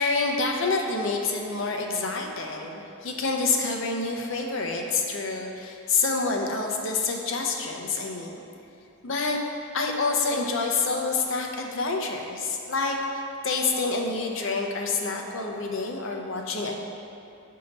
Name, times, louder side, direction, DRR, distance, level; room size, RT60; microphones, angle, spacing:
voice 1, 0.0-8.4 9.0-9.4 9.7-16.7, left 3 dB, 60° left, 1 dB, 0.6 m, -27 dB
7.8 x 2.8 x 5.2 m, 2.6 s
head